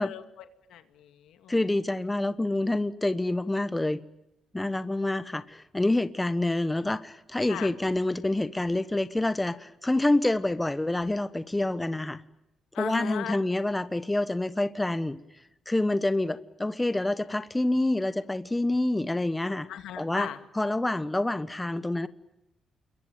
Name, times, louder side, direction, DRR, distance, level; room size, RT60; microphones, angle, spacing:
voice 1, 0.0-1.6 7.5-7.7 12.7-13.4 19.7-20.4, left 10 dB, 80° left, 8 dB, 2.2 m, -38 dB
voice 2, 1.5-4.0 4.5-12.2 12.8-15.2 15.7-19.7 20.0-20.3 20.5-22.1, left 2 dB, 10° left, 13 dB, 1.2 m, -27 dB
28.5 x 22.5 x 9.1 m, 0.88 s
cardioid pair, 90°, 0 cm